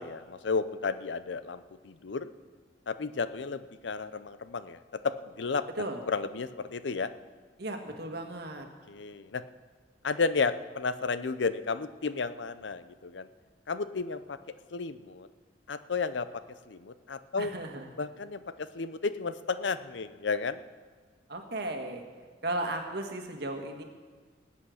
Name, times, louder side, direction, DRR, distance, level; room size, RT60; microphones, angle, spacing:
voice 1, 0.0-2.3 2.9-5.6 6.1-7.1 8.9-9.4 10.0-13.3 13.7-14.4 14.7-15.3 15.7-16.3 16.7-17.5 18.0-20.6, left 4 dB, 75° left, 13 dB, 0.6 m, -32 dB
voice 2, 7.6-8.7 17.4-17.9 21.3-23.8, right 1 dB, 60° right, 4 dB, 1.8 m, -35 dB
19.5 x 8.6 x 6.5 m, 1.5 s
head